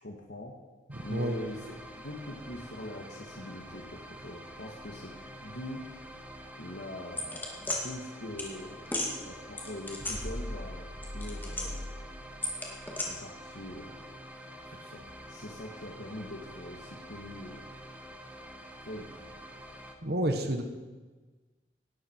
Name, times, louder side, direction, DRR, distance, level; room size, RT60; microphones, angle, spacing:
voice 1, 0.0-0.5 1.0-1.6 2.0-5.1 5.4-5.8 6.6-8.8 9.2-10.8 11.1-11.9 13.0-14.0 14.6-17.6 18.9-19.1, left 1 dB, 65° left, -1 dB, 1.8 m, -42 dB
sound 1, 0.9-19.9, equal, 10° right, 1.3 m, -47 dB
voice 2, 0.9-1.4 20.0-20.6, right 1 dB, 55° right, 5 dB, 1.5 m, -30 dB
sound 2, 7.2-7.8 8.4-8.5 8.9-9.1 9.6-10.7 11.0-11.9 12.4-13.1, left 2 dB, 10° left, 2.1 m, -34 dB
18.0 x 12.0 x 4.6 m, 1.3 s
head